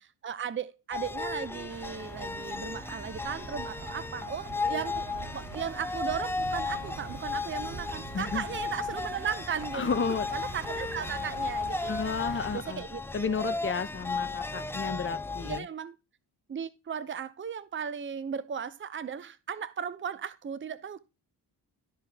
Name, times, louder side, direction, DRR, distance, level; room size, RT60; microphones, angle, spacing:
voice 1, 0.0-5.1 5.3-9.9 10.3-13.6 14.5-15.0 15.4-16.0 16.5-21.0, right 7 dB, 30° right, 0.7 m, -37 dB
sound 1, 0.9-15.6, left 3 dB, 5° left, 0.5 m, -35 dB
sound 2, 1.7-12.6, right 5 dB, 60° right, 2.8 m, -45 dB
voice 2, 9.7-10.3 11.9-12.8 13.1-15.7, left 5 dB, 30° left, 0.9 m, -32 dB
12.5 x 4.5 x 3.5 m
cardioid pair, 80°, 42 cm